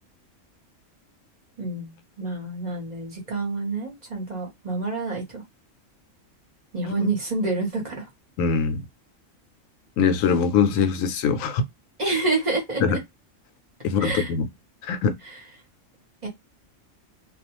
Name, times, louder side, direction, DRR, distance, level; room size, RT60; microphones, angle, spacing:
voice 1, 1.6-5.4 6.7-8.1 12.0-13.0 14.0-14.3 15.2-15.4 16.2-16.3, right 3 dB, 35° right, 0.9 m, -28 dB
voice 2, 8.4-8.8 10.0-11.6 12.8-13.0 13.8-14.5 14.8-15.1, left 6 dB, 80° left, 1.0 m, -22 dB
2.4 x 2.3 x 2.9 m
omnidirectional pair, 1.4 m